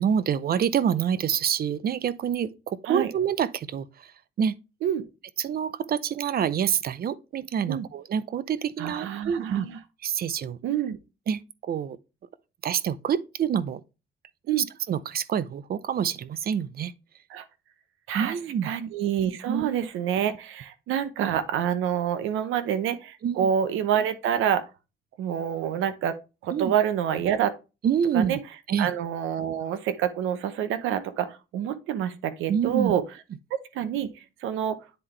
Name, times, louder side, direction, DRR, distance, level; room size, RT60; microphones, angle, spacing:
voice 1, 0.0-4.1 4.4-4.5 5.4-9.7 10.0-10.6 11.3-12.0 12.6-13.8 14.5-16.9 18.1-18.7 19.5-19.7 23.2-23.5 26.5-26.7 27.8-28.4 28.7-28.9 32.5-32.9, right 8 dB, 50° right, 0.6 m, -27 dB
voice 2, 8.8-9.8 10.6-11.0 14.5-14.7 17.3-17.4 18.1-18.4 18.6-24.6 25.2-27.6 28.1-28.4 28.8-33.0 33.5-34.1 34.4-34.8, right 9 dB, 90° right, 0.8 m, -27 dB
10.0 x 3.7 x 3.2 m
cardioid pair, 90°, 20 cm